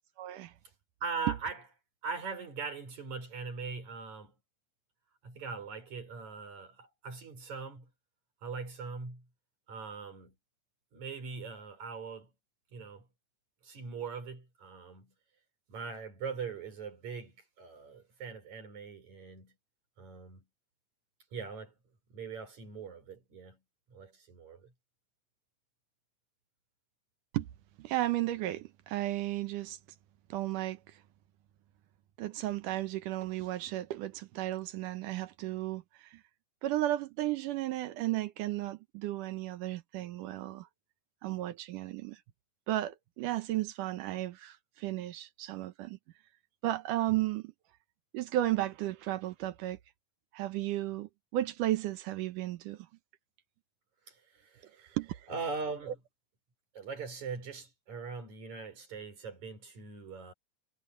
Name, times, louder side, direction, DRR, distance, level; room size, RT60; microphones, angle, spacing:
voice 1, 0.2-0.5 27.3-27.5 27.8-29.8 30.3-30.8 32.2-36.2 36.6-40.7 41.2-42.2 42.7-46.0 46.6-47.4 48.1-49.8 50.3-52.9 54.9-55.3 55.9-56.0, right 15 dB, 75° right, 2.3 m, -34 dB
voice 2, 1.0-1.6 2.0-4.3 5.2-7.9 8.4-9.3 9.7-10.3 10.9-12.3 12.7-13.1 13.6-15.1 15.7-19.5 20.0-20.4 21.3-21.7 22.1-23.6 23.9-24.7 54.1-54.9 55.3-56.0 56.7-60.3, right 5 dB, 55° right, 5.9 m, -41 dB
omnidirectional pair, 3.9 m